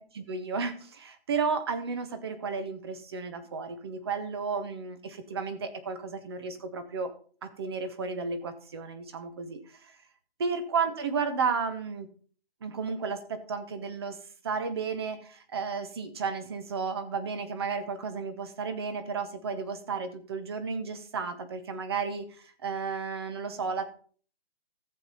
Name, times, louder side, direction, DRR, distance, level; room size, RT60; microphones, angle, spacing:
voice 1, 0.0-7.1 7.4-10.0 10.4-12.1 12.6-14.2 14.4-23.9, right 5 dB, 25° right, 10 dB, 0.9 m, -33 dB
13.5 x 7.5 x 4.0 m, 0.43 s
hypercardioid pair, 165°, 32 cm